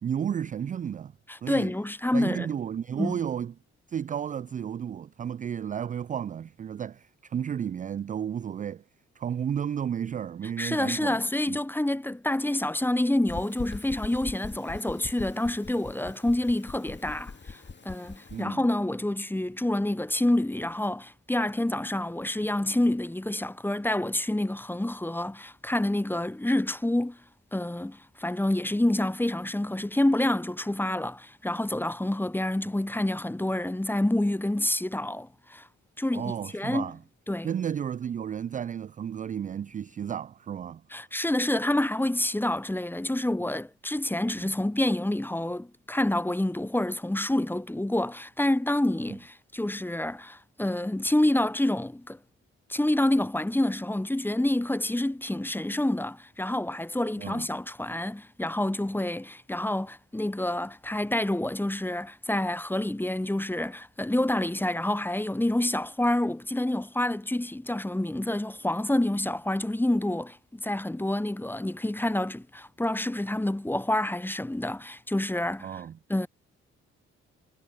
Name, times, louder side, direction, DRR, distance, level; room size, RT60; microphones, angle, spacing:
voice 1, 0.0-1.1 1.4-1.7 2.1-3.5 3.9-8.8 9.2-11.2 11.5-11.6 18.3-18.6 36.1-37.0 37.4-40.8 57.2-57.5 75.6-76.0, right 8 dB, 25° right, 0.3 m, -32 dB
voice 2, 1.3-2.5 3.0-3.2 10.6-27.2 27.5-35.7 36.0-36.9 37.3-37.5 40.9-52.2 52.7-75.8 76.1-76.3, left 1 dB, 5° left, 0.7 m, -28 dB
sound 1, 13.3-18.4, left 4 dB, 30° left, 2.3 m, -42 dB
hypercardioid pair, 40°, 34 cm